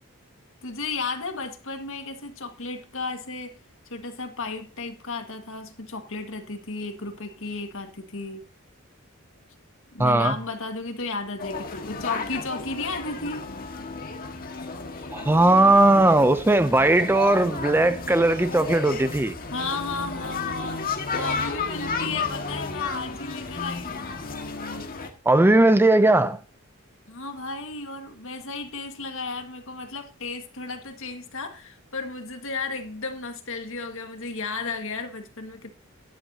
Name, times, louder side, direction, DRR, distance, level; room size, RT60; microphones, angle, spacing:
voice 1, 0.6-3.6 3.9-8.4 9.9-13.5 19.0-19.1 19.5-24.1 27.1-35.7, left 3 dB, 70° left, 1.8 m, -34 dB
voice 2, 10.0-10.3 15.1-19.3 25.3-26.4, right 2 dB, 10° right, 0.5 m, -18 dB
sound 1, 11.4-25.1, left 4 dB, 45° left, 1.7 m, -33 dB
12.5 x 10.5 x 2.8 m
head